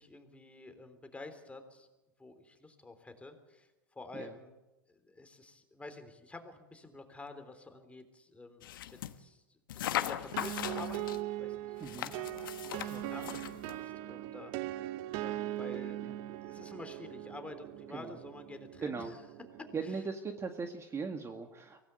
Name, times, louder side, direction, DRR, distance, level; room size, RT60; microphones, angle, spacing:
voice 1, 0.0-1.9 2.2-4.5 4.9-11.8 12.3-16.0 16.4-19.2 19.6-19.9, left 2 dB, 10° left, 7 dB, 3.5 m, -49 dB
sound 1, 8.6-9.2 9.7-11.2 11.8-13.8, left 12 dB, 75° left, 1.2 m, -38 dB
sound 2, 10.3-19.9, right 14 dB, 55° right, 0.9 m, -40 dB
voice 2, 11.8-12.1 12.9-13.0 13.3-13.4 16.0-16.1 17.9-18.2 18.8-19.1 19.7-21.8, right 5 dB, 25° right, 6 dB, 1.8 m, -39 dB
24.0 x 17.5 x 8.2 m, 1.0 s
hypercardioid pair, 95°, 11 cm